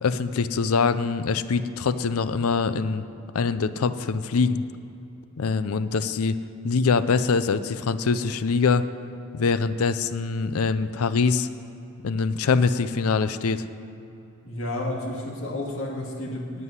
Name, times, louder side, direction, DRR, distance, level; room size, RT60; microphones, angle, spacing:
voice 1, 0.0-3.0 3.3-4.6 5.4-6.4 6.6-8.9 9.3-11.5 12.0-13.7, left 4 dB, 80° left, 13 dB, 0.5 m, -23 dB
voice 2, 14.4-16.6, left 1 dB, 60° left, -1 dB, 2.1 m, -31 dB
9.2 x 8.3 x 9.6 m, 2.8 s
head